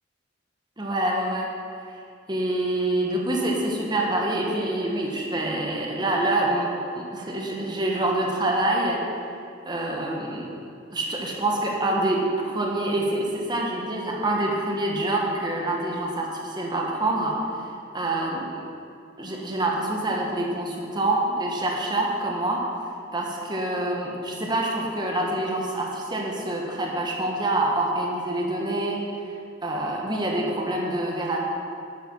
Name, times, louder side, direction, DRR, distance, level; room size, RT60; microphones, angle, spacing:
voice 1, 0.8-1.5 1.9-2.0 2.3-9.0 9.6-10.5 10.9-17.4 17.9-18.6 19.2-22.6 23.1-31.4, right 1 dB, 25° right, -1 dB, 1.5 m, -26 dB
11.5 x 9.6 x 5.6 m, 2.5 s
head